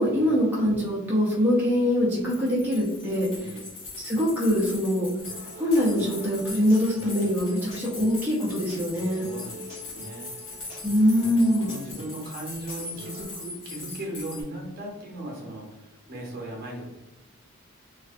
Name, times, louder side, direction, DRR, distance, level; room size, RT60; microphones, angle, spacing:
voice 1, 0.0-3.6 4.0-5.1 5.6-9.3 10.8-11.7, equal, 10° right, -6 dB, 0.5 m, -23 dB
sound 1, 2.3-14.4, left 3 dB, 65° left, 0.9 m, -41 dB
voice 2, 3.3-3.6 9.3-10.3 11.1-16.9, right 1 dB, 50° right, -2 dB, 0.7 m, -38 dB
Human voice / Acoustic guitar, 5.2-13.2, equal, 35° left, 1.2 m, -45 dB
2.5 x 2.3 x 2.4 m, 1.0 s
head